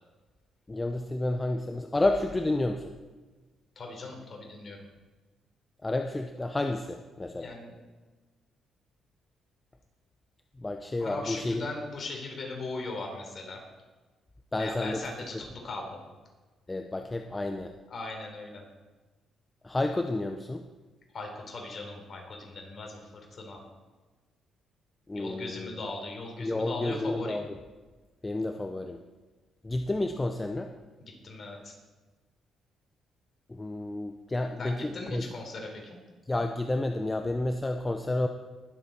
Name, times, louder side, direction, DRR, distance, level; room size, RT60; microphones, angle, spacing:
voice 1, 0.7-2.9 5.8-7.5 10.6-11.6 14.5-15.0 16.7-17.7 19.6-20.6 25.1-25.8 26.4-27.4 28.2-29.0 29.6-30.7 33.5-35.3 36.3-38.3, left 2 dB, 20° left, 5 dB, 0.7 m, -30 dB
voice 2, 3.8-4.8 7.4-7.8 11.0-13.6 14.6-16.1 17.9-18.6 21.1-23.6 25.1-27.4 31.0-31.7 34.6-36.0, left 2 dB, 45° left, 1 dB, 3.8 m, -39 dB
20.5 x 7.8 x 4.4 m, 1.3 s
cardioid pair, 90°, 0 cm